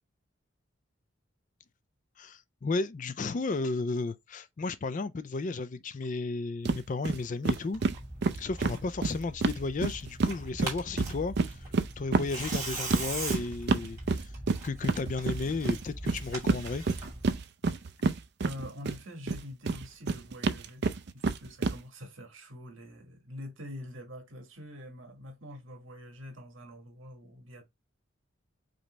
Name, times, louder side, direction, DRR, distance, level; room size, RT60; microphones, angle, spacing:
voice 1, 2.2-7.8 8.4-11.7 12.0-14.3 14.6-16.8 17.7-17.8, left 3 dB, 40° left, 0.4 m, -33 dB
sound 1, 6.6-6.8 7.0-7.2 7.4-10.3 10.6-19.0 19.3-21.8, right 3 dB, 55° right, 0.4 m, -29 dB
Tearing, 7.7-17.3, right 2 dB, 15° right, 2.2 m, -41 dB
voice 2, 18.4-20.9 21.1-27.6, left 1 dB, 75° right, 1.8 m, -45 dB
5.1 x 2.9 x 3.2 m
head